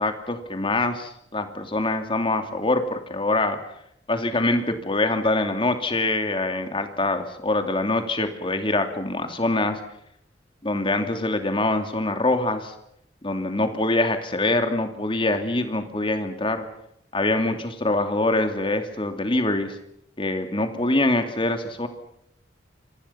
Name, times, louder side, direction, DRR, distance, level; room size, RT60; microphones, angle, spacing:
voice 1, 0.0-3.6 4.1-9.8 10.6-12.7 13.2-16.6 17.1-19.8 20.2-21.9, left 2 dB, 30° left, 6 dB, 2.8 m, -24 dB
28.0 x 25.0 x 5.9 m, 0.74 s
head